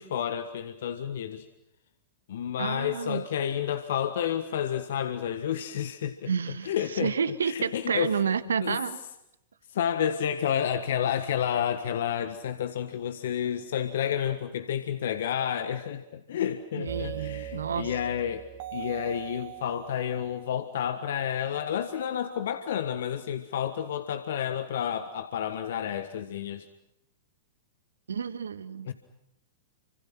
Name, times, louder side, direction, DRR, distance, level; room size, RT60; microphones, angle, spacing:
voice 1, 0.0-1.5 2.3-7.1 7.4-8.1 8.6-8.8 9.7-26.7 28.9-29.0, left 9 dB, 60° left, 9 dB, 1.6 m, -30 dB
voice 2, 2.6-3.2 6.3-9.0 16.7-17.9 28.1-28.9, right 6 dB, 70° right, 13 dB, 1.6 m, -30 dB
sound 1, 16.9-21.5, right 12 dB, 45° right, 2.3 m, -41 dB
29.5 x 26.0 x 6.0 m, 0.84 s
figure-of-eight pair, 100°, 0 cm